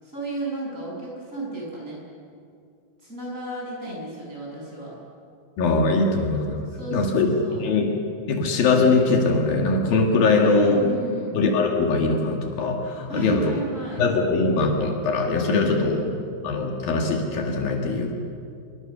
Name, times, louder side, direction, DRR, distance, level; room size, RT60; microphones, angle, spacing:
voice 1, 0.0-2.0 3.0-4.9 6.7-7.7 10.4-11.4 13.1-14.0 15.6-16.2, right 2 dB, 20° right, -4 dB, 7.8 m, -32 dB
voice 2, 5.6-6.7 6.9-7.3 7.6-7.9 8.3-10.8 11.3-13.5 14.0-16.0 16.4-18.1, left 3 dB, 70° left, 1 dB, 3.7 m, -21 dB
25.5 x 24.0 x 6.8 m, 2.4 s
omnidirectional pair, 4.4 m